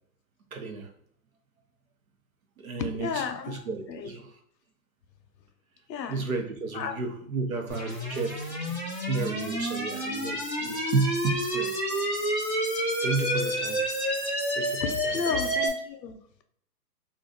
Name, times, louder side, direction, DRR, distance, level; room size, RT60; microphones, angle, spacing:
voice 1, 0.5-0.9 2.6-4.4 6.1-8.8 9.1-11.8 13.0-13.8 14.5-15.4, right 4 dB, 55° right, 3 dB, 0.7 m, -32 dB
voice 2, 2.8-4.1 5.9-6.2 6.7-7.0 14.8-16.4, left 6 dB, 85° left, 7 dB, 0.8 m, -33 dB
sound 1, 7.7-15.7, equal, 10° right, 0.6 m, -29 dB
2.5 x 2.3 x 3.7 m, 0.66 s
hypercardioid pair, 175°, 50 cm